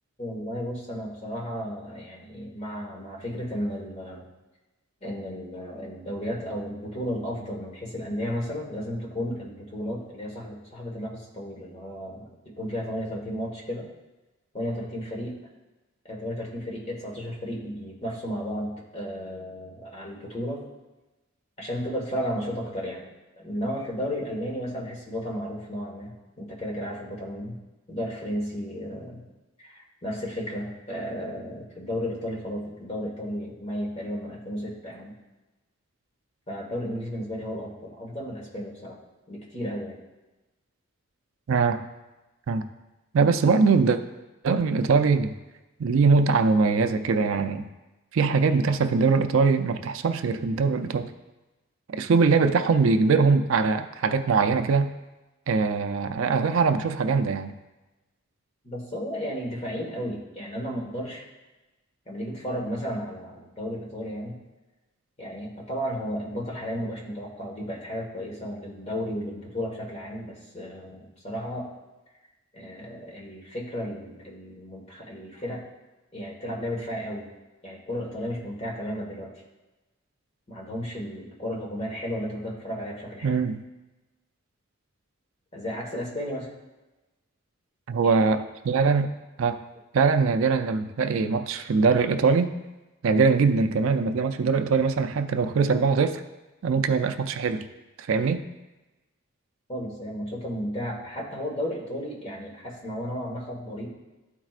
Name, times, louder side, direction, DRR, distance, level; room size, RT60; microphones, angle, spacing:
voice 1, 0.2-4.2 5.0-12.3 12.6-13.9 14.5-15.4 16.0-20.6 21.6-23.1 23.4-27.6 27.9-29.2 29.6-35.1 36.5-39.0 39.3-40.0 58.6-61.2 62.0-64.4 65.2-71.7 72.5-75.6 76.1-77.3 77.6-79.3 80.5-83.4 85.5-86.5 88.0-88.2 99.7-103.9, equal, 30° left, -2 dB, 1.5 m, -33 dB
voice 2, 41.5-41.8 42.5-42.6 43.1-44.0 44.4-45.3 45.8-47.7 48.1-51.1 51.9-54.9 55.5-57.5 83.2-83.6 87.9-89.1 89.4-89.6 89.9-92.5 93.0-96.2 96.6-97.7 98.0-98.4, right 4 dB, 70° right, 8 dB, 0.4 m, -22 dB
12.5 x 4.5 x 2.5 m, 1.1 s
head